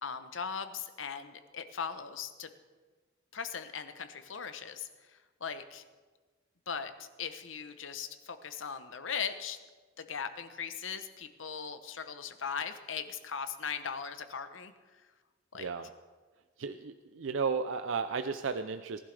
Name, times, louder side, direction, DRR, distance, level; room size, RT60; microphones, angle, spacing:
voice 1, 0.0-2.5 3.3-5.8 6.7-9.6 10.0-14.7 15.5-15.7, left 6 dB, 70° left, 10 dB, 0.9 m, -39 dB
voice 2, 15.5-15.9 16.6-19.0, right 5 dB, 70° right, 9 dB, 0.5 m, -34 dB
18.5 x 11.5 x 3.4 m, 1.3 s
head